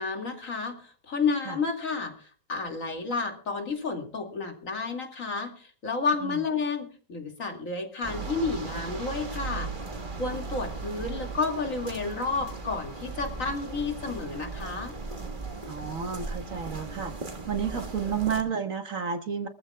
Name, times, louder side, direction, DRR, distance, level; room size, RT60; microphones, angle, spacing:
voice 1, 0.0-9.7 10.2-14.9, left 4 dB, 55° left, 3 dB, 2.7 m, -31 dB
sound 1, 8.0-18.4, right 3 dB, 30° right, 1.8 m, -37 dB
voice 2, 15.6-17.1 17.5-19.5, right 7 dB, 55° right, 6 dB, 1.8 m, -31 dB
24.5 x 14.5 x 2.3 m, 0.39 s
omnidirectional pair, 1.7 m